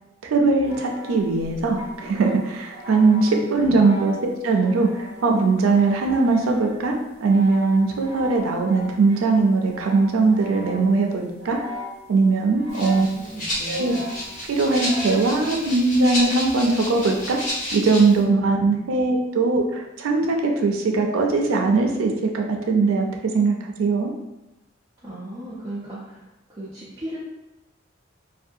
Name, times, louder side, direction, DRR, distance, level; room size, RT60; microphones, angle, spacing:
voice 1, 0.2-6.9 7.2-11.6 12.1-13.1 13.7-13.9 14.5-23.1 23.3-24.1, right 3 dB, 85° right, 2 dB, 0.4 m, -20 dB
sound 1, 0.6-11.0 11.4-12.2 12.5-13.3 13.7-15.3 16.1-17.5, equal, 60° right, 0.8 m, -39 dB
voice 2, 3.6-3.9 12.9-14.0 25.0-27.2, right 1 dB, 20° right, -9 dB, 0.4 m, -36 dB
Rattle (instrument), 12.7-18.2, equal, 40° left, 0.9 m, -31 dB
2.5 x 2.2 x 2.6 m, 0.97 s
head